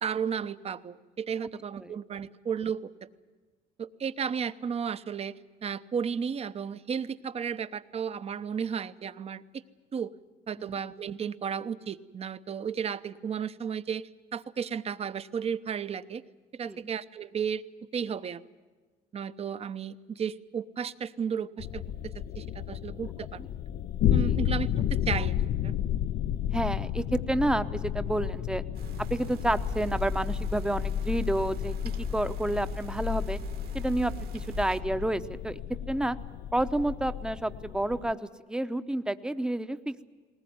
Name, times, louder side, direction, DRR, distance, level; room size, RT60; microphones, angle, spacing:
voice 1, 0.0-2.9 3.8-9.6 9.9-10.1 10.5-16.2 16.5-17.6 17.9-18.4 19.1-23.4 24.1-25.4 25.6-25.7, right 7 dB, 35° right, 14 dB, 0.8 m, -34 dB
sound 1, 21.6-38.1, left 10 dB, 65° left, 0.6 m, -32 dB
voice 2, 26.5-28.6 29.1-31.7 32.1-33.4 33.7-35.6 35.9-36.2 36.5-40.1, right 1 dB, 5° right, 10 dB, 0.9 m, -30 dB
sound 2, 28.7-34.8, right 6 dB, 65° right, 2.2 m, -42 dB
20.0 x 19.5 x 9.5 m, 1.4 s
cardioid pair, 110°, 17 cm